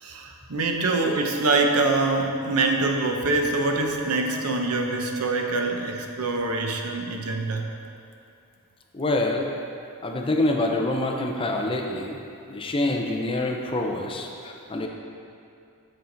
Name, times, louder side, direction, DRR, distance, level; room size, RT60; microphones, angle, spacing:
voice 1, 0.0-7.6, right 3 dB, 80° right, 3 dB, 0.7 m, -24 dB
voice 2, 8.9-9.5 10.0-12.2 12.5-14.9, left 2 dB, 25° left, 1 dB, 0.5 m, -26 dB
8.0 x 5.7 x 3.9 m, 2.6 s
head